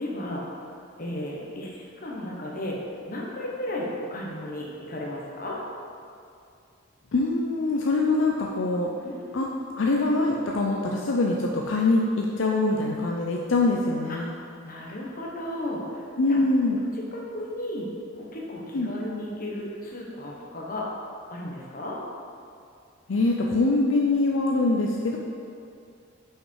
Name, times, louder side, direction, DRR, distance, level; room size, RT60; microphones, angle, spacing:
voice 1, 0.0-2.8 3.1-5.6 9.0-9.5 14.1-14.2 14.6-16.4 16.7-17.9 18.1-20.9 21.3-22.0, left 1 dB, 45° left, -3 dB, 1.2 m, -34 dB
voice 2, 7.1-8.9 9.3-9.5 9.8-14.3 16.2-16.8 18.7-18.9 23.1-25.2, left 2 dB, 70° left, -1 dB, 0.5 m, -24 dB
5.8 x 5.6 x 4.6 m, 2.4 s
head